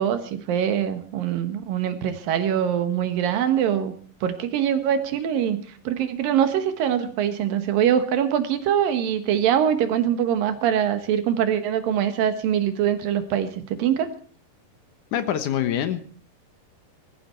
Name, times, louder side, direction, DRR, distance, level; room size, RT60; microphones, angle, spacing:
voice 1, 0.0-3.9 4.2-14.1, right 9 dB, 85° right, 9 dB, 3.1 m, -23 dB
voice 2, 15.1-16.0, left 10 dB, 70° left, 10 dB, 2.5 m, -24 dB
20.0 x 14.5 x 4.5 m, 0.43 s
omnidirectional pair, 3.9 m